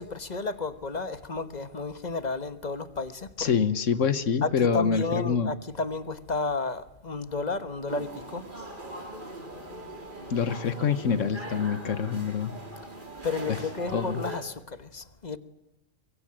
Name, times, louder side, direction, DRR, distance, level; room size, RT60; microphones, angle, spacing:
voice 1, 0.0-3.5 4.4-8.4 13.2-15.4, left 3 dB, 35° left, 1.3 m, -32 dB
voice 2, 3.4-5.5 10.3-12.5 13.9-14.2, left 6 dB, 85° left, 1.5 m, -26 dB
sound 1, 7.9-14.4, right 1 dB, 40° right, 4.0 m, -40 dB
24.5 x 22.5 x 8.9 m
omnidirectional pair, 1.3 m